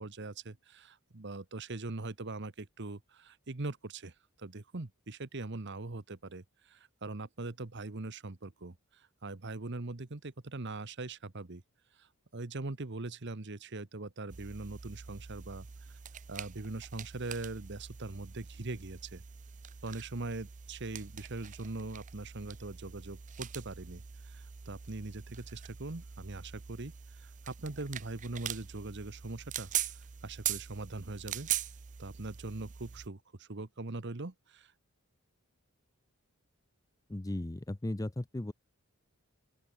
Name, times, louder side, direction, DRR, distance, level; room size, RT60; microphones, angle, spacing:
voice 1, 0.0-11.6 12.0-15.7 16.3-19.2 19.8-29.7 30.2-31.5 32.0-34.7, right 2 dB, 55° right, 1.2 m, -41 dB
sound 1, 14.3-33.1, right 10 dB, 35° right, 0.5 m, -42 dB
voice 2, 37.1-38.5, left 1 dB, 15° left, 0.5 m, -36 dB
open air
head